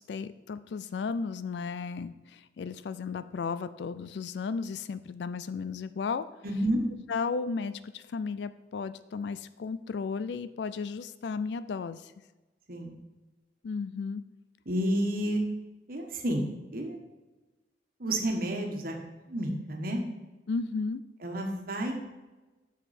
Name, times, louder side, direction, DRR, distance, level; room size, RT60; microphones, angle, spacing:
voice 1, 0.0-6.2 7.1-12.1 13.6-14.2 20.5-21.0, left 5 dB, 65° left, 14 dB, 0.4 m, -34 dB
voice 2, 6.4-6.8 12.7-12.9 14.7-15.4 15.9-17.0 18.0-18.9 19.3-20.0 21.2-21.9, right 1 dB, 55° right, 2 dB, 1.4 m, -30 dB
8.0 x 6.3 x 4.3 m, 1.2 s
head